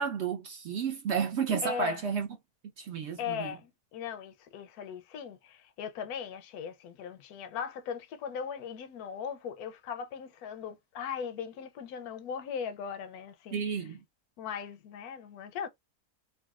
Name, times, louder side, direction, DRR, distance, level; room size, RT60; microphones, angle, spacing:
voice 1, 0.0-2.3 2.8-3.5 13.5-14.0, right 6 dB, 60° right, 0.7 m, -32 dB
voice 2, 1.6-2.0 3.2-13.9 14.4-15.7, left 7 dB, 80° left, 1.1 m, -38 dB
3.9 x 2.2 x 2.3 m
omnidirectional pair, 1.6 m